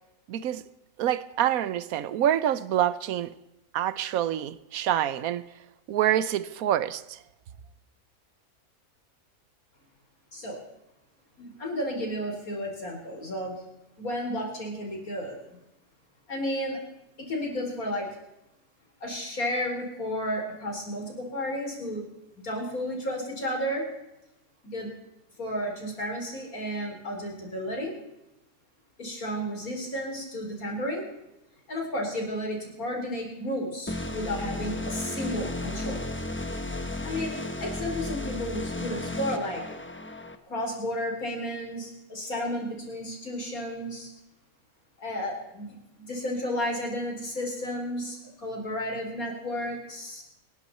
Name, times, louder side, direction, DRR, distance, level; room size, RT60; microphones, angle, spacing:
voice 1, 0.3-0.6 1.0-3.3 3.7-5.5 5.9-7.2, right 11 dB, 85° right, 1.2 m, -26 dB
voice 2, 11.4-13.5 14.0-15.6 16.3-16.8 17.2-18.1 19.0-22.0 22.4-23.9 24.6-24.9 25.4-27.9 29.0-31.1 31.7-36.2 37.0-37.3 37.6-39.6 40.4-44.1 45.0-50.2, equal, 85° left, 5.0 m, -32 dB
sound 1, 33.9-40.3, left 1 dB, 10° left, 1.0 m, -34 dB
28.0 x 11.0 x 4.3 m
omnidirectional pair, 1.5 m